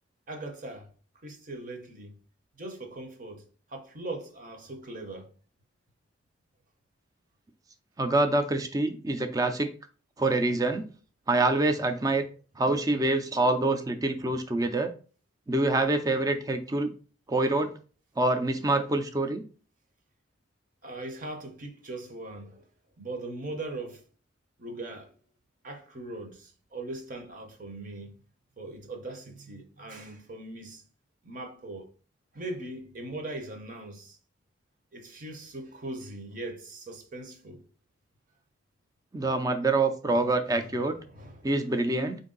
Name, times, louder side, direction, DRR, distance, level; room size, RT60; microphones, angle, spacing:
voice 1, 0.3-0.9 1.2-2.2 2.6-3.4 3.7-5.3 12.7-13.0 20.8-22.6 23.0-24.0 24.6-25.1 25.6-28.2 28.6-30.8 31.2-31.9 32.3-34.2 34.9-37.6 40.1-40.2 40.5-41.4, right 2 dB, 45° right, 0.8 m, -40 dB
voice 2, 8.0-9.7 10.2-10.8 11.3-12.3 12.6-14.9 15.5-16.9 17.3-17.7 18.2-19.4 39.1-41.0 41.4-42.2, right 2 dB, 20° right, 0.4 m, -26 dB
4.5 x 2.6 x 3.8 m
head